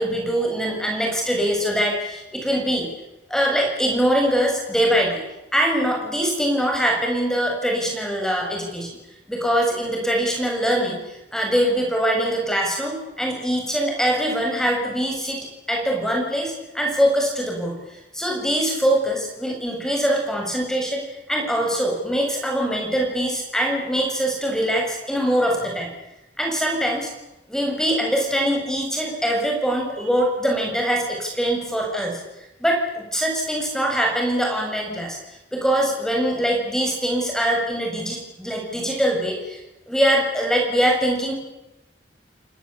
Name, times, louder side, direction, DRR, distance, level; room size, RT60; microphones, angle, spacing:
voice 1, 0.0-2.9 3.3-5.2 5.5-9.0 9.3-17.8 18.1-21.0 21.3-25.9 26.4-27.1 27.5-32.2 32.6-35.2 35.5-39.6 39.9-41.3, equal, 5° left, 0 dB, 7.4 m, -23 dB
30.0 x 18.0 x 8.8 m, 0.92 s
head